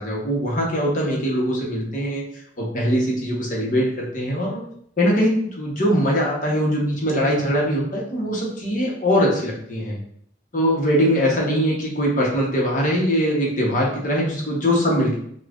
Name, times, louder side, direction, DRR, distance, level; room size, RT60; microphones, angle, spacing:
voice 1, 0.0-2.2 2.6-4.6 5.0-10.0 10.5-15.2, equal, 50° left, -3 dB, 1.0 m, -21 dB
5.5 x 2.4 x 2.5 m, 0.67 s
head